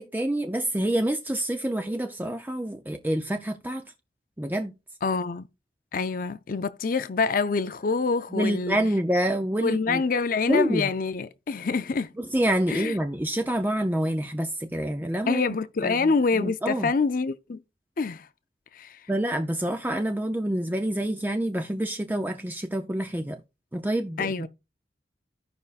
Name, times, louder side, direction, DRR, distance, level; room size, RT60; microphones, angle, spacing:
voice 1, 0.0-3.8 4.4-4.8 8.3-10.0 10.5-10.9 12.2-15.4 15.8-16.9 19.1-23.4 23.7-24.5, right 1 dB, 10° right, 0.5 m, -27 dB
voice 2, 5.0-5.5 5.9-8.8 9.6-12.1 12.7-13.0 15.3-17.6 18.0-18.3 18.7-19.0 24.2-24.5, left 4 dB, 50° left, 0.4 m, -26 dB
15.5 x 5.4 x 2.4 m
head